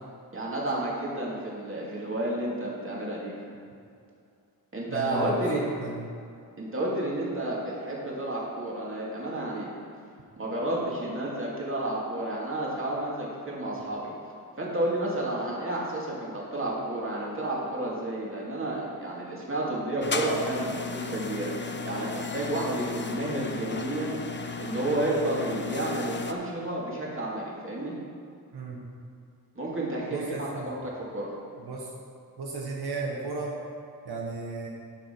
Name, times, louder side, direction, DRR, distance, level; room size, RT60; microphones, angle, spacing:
voice 1, 0.3-3.3 4.7-5.6 6.6-9.7 10.4-14.1 14.6-21.5 21.8-24.2 24.6-28.0 29.5-31.3, right 1 dB, 35° right, -5 dB, 2.5 m, -31 dB
voice 2, 4.9-6.0 28.5-28.8 30.1-30.8 31.6-31.9 32.4-33.6 34.0-34.7, right 3 dB, 90° right, -2 dB, 1.2 m, -34 dB
sound 1, 20.0-26.3, left 4 dB, 30° left, 0.7 m, -35 dB
9.1 x 5.9 x 5.9 m, 2.4 s
wide cardioid pair, 80°, 38 cm